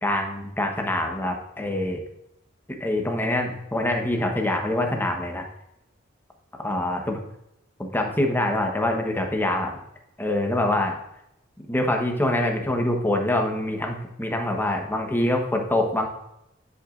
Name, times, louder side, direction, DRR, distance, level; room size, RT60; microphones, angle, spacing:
voice 1, 0.0-2.0 2.8-5.5 6.6-7.2 7.8-9.8 10.2-10.9 11.7-16.1, left 1 dB, 10° left, 2 dB, 1.1 m, -25 dB
9.9 x 8.2 x 2.5 m, 0.83 s
head